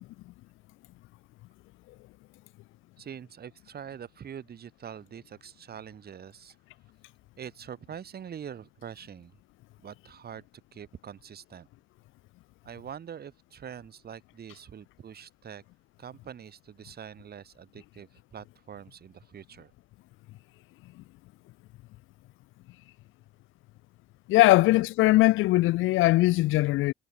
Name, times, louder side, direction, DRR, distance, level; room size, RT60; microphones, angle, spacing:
voice 1, 3.0-6.6 7.4-9.3 9.8-10.4 10.7-11.7 12.6-15.6 16.0-19.7, right 8 dB, 50° right, 2.0 m, -44 dB
voice 2, 24.3-26.9, left 18 dB, 85° left, 0.4 m, -20 dB
cardioid pair, 90°, 20 cm